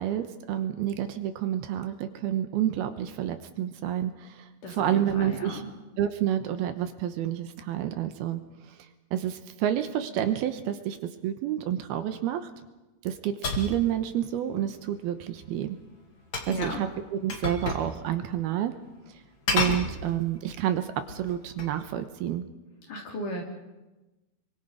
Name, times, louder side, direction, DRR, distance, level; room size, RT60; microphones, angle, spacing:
voice 1, 0.0-4.3 4.7-5.6 6.0-8.4 9.1-11.0 11.2-12.5 13.0-15.8 16.5-18.7 19.5-22.4, right 11 dB, 75° right, 9 dB, 2.9 m, -29 dB
voice 2, 4.6-5.7 16.5-16.9 22.9-23.4, left 1 dB, 50° left, 0 dB, 4.6 m, -35 dB
sound 1, 13.4-13.8 16.3-16.8 17.3-17.9 18.2-18.3 19.5-20.4 21.0-21.8, left 3 dB, 35° left, 2.5 m, -30 dB
28.0 x 24.0 x 5.1 m, 1.1 s
omnidirectional pair, 4.7 m